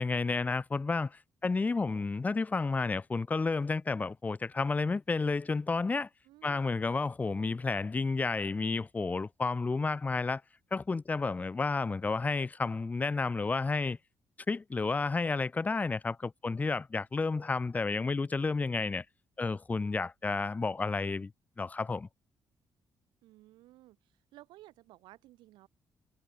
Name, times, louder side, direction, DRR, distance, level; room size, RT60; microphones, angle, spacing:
voice 1, 0.0-6.1 6.4-10.4 10.7-14.0 14.5-19.0 19.4-21.3 21.6-22.1, left 4 dB, 20° left, 0.3 m, -31 dB
voice 2, 6.2-6.8 23.2-25.7, right 17 dB, 90° right, 1.7 m, -56 dB
cardioid pair, 80°, 8 cm